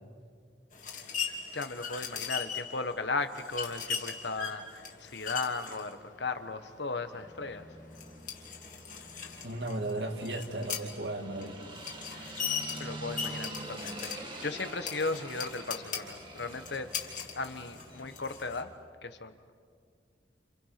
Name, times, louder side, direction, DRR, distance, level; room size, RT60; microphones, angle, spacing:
sound 1, 0.7-18.6, left 7 dB, 45° left, 2.9 m, -40 dB
voice 1, 1.5-7.7 12.1-12.4 12.8-16.9 17.4-18.7 19.0-19.5, left 3 dB, 70° left, 9 dB, 1.3 m, -36 dB
sound 2, 7.1-18.7, right 2 dB, 25° right, 2.3 m, -46 dB
voice 2, 9.4-11.6, right 2 dB, 65° right, 4 dB, 2.3 m, -35 dB
30.0 x 29.5 x 5.9 m, 2.2 s
head